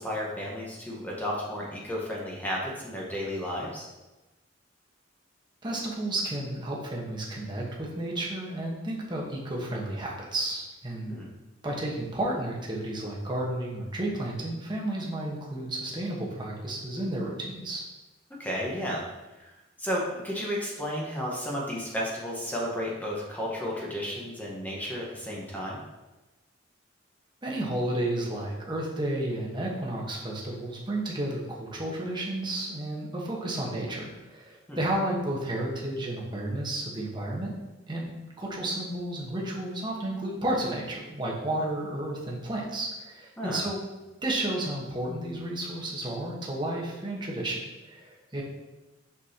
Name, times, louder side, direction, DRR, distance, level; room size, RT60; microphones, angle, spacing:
voice 1, 0.0-3.9 11.1-11.3 18.4-19.0 19.4-25.8 34.7-34.8 43.4-43.6, equal, 10° left, -4 dB, 1.2 m, -33 dB
voice 2, 5.6-11.1 11.6-17.8 27.4-37.5 37.9-38.1 38.4-43.8 44.2-48.4, right 1 dB, 25° right, -3 dB, 1.2 m, -32 dB
6.1 x 6.1 x 2.8 m, 1.1 s
head